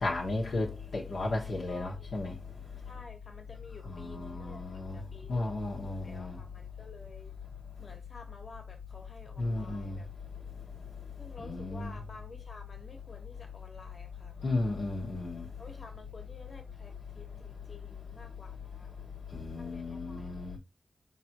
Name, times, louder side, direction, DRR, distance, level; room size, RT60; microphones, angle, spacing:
voice 1, 0.0-0.7 0.9-2.3 3.9-5.0 5.3-6.3 9.4-10.0 11.4-11.9 14.4-15.5 19.3-20.6, left 2 dB, 85° left, 1.0 m, -34 dB
voice 2, 1.7-2.1 2.8-4.6 4.9-7.3 7.8-10.1 11.2-15.0 15.6-19.0 19.5-20.4, left 3 dB, 65° left, 1.3 m, -52 dB
4.5 x 3.3 x 2.9 m
cardioid pair, 60°, 0 cm